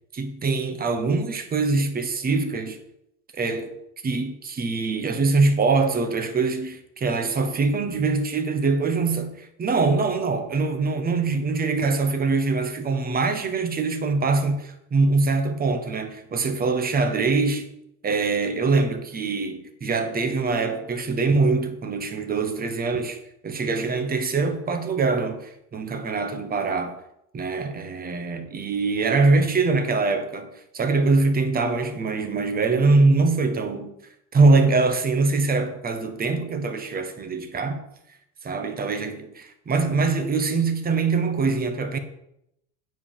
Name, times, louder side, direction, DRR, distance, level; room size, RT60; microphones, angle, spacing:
voice 1, 0.1-2.8 3.4-3.7 4.0-17.7 18.0-23.2 23.4-27.0 27.3-30.5 30.7-33.9 34.3-37.8 38.4-42.0, right 3 dB, 20° right, 1.2 m, -23 dB
9.2 x 5.4 x 7.4 m
cardioid pair, 145°, 47 cm